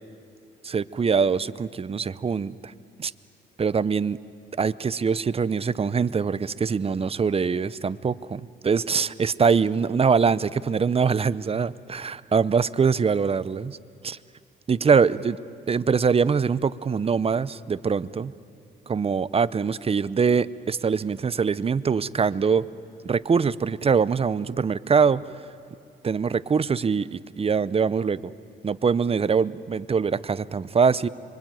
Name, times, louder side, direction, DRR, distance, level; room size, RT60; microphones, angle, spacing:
voice 1, 0.6-2.7 3.0-3.1 3.6-4.2 4.6-13.8 14.0-14.2 14.7-15.4 15.7-18.3 18.9-22.7 23.0-25.2 26.0-28.3 28.6-31.1, right 5 dB, 30° right, 17 dB, 0.7 m, -23 dB
25.5 x 23.5 x 9.2 m, 2.5 s
cardioid pair, 90°, 20 cm